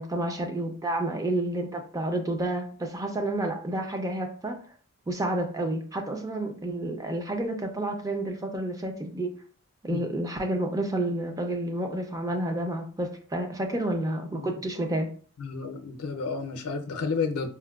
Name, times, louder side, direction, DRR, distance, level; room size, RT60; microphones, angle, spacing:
voice 1, 0.0-4.6 5.1-9.3 9.8-15.1, right 1 dB, 15° right, 0.4 m, -30 dB
voice 2, 15.4-17.5, left 4 dB, 85° left, 0.5 m, -31 dB
4.4 x 2.1 x 2.3 m
head